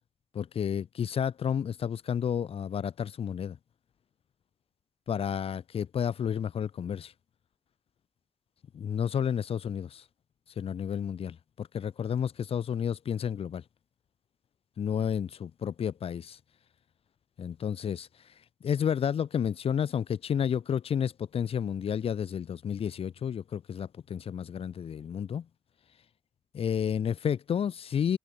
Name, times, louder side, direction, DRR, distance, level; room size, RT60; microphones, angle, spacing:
voice 1, 0.3-3.6 5.1-7.1 8.7-10.0 10.6-13.6 14.8-16.4 17.4-18.1 18.6-25.5 26.5-28.2, left 8 dB, 80° left, 5.2 m, -31 dB
wide cardioid pair, 170°, 10 cm